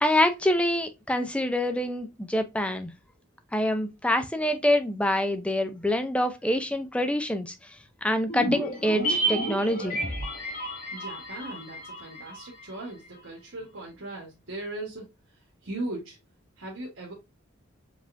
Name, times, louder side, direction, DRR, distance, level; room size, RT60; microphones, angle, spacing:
voice 1, 0.0-2.9 3.5-7.5 8.0-10.0, left 1 dB, 5° left, 0.5 m, -26 dB
sound 1, 8.3-12.8 13.0-13.1, right 1 dB, 45° left, 2.2 m, -31 dB
voice 2, 10.9-15.0 15.6-16.2 16.6-17.1, right 2 dB, 80° right, 1.3 m, -38 dB
4.9 x 3.5 x 2.6 m
head